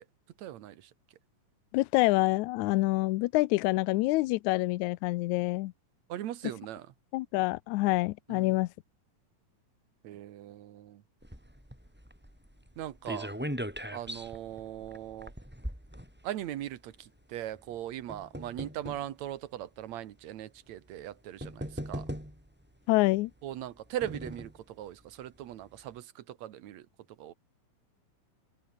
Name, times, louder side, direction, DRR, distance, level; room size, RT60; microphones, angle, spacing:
voice 1, 0.4-0.8 6.1-6.9 8.3-8.5 10.0-11.0 12.8-13.3 13.9-15.3 16.2-16.9 17.3-22.1 23.4-24.5 24.8-26.8 27.2-27.3, right 12 dB, 65° right, 2.3 m, -39 dB
voice 2, 1.7-5.7 7.1-8.7 22.9-23.3, left 20 dB, 80° left, 1.9 m, -26 dB
sound 1, 11.2-16.7 17.5-19.1 19.9-20.0 21.0-21.1 21.4-22.6 23.5-24.6 25.1-25.2 25.4-25.5, equal, 5° right, 6.4 m, -40 dB
open air
omnidirectional pair, 3.7 m